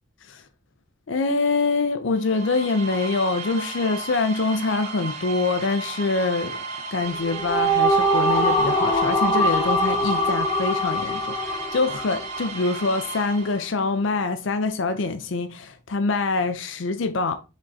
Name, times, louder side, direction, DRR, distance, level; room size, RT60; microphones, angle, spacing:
voice 1, 1.1-6.6 6.9-17.3, left 3 dB, 70° left, 0.5 m, -25 dB
sound 1, 2.1-14.0, right 4 dB, 35° right, 1.0 m, -35 dB
sound 2, 7.1-12.6, equal, 20° left, 0.8 m, -22 dB
5.1 x 3.6 x 2.7 m
head